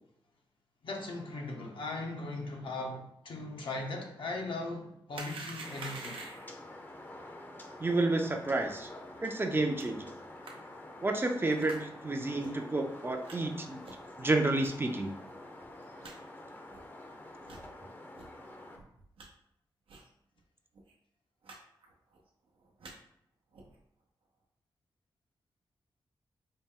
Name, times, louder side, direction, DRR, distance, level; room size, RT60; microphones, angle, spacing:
voice 1, 0.8-6.2, left 2 dB, 70° left, 1 dB, 0.7 m, -38 dB
sound 1, 5.1-6.6 9.8-9.9 10.4-10.5 11.6-11.8 12.4-12.5 13.2-13.4 13.8-14.1 14.6-14.7 15.3-15.4 15.6-15.7 16.0-16.1 16.7-16.8 17.4-17.6 18.1-18.3 18.7-19.3 19.9-20.1 20.4-20.5 20.7-20.9 21.4-21.6 21.8-22.2 22.6-22.9 23.5-23.8, right 3 dB, 90° right, 0.6 m, -46 dB
sound 2, 5.6-18.8, left 1 dB, 20° left, 0.6 m, -48 dB
voice 2, 7.8-8.9 9.2-10.1 11.0-13.8 14.2-15.1, right 2 dB, 25° right, 4 dB, 0.4 m, -30 dB
4.1 x 2.1 x 3.6 m, 0.75 s
cardioid pair, 80°, 9 cm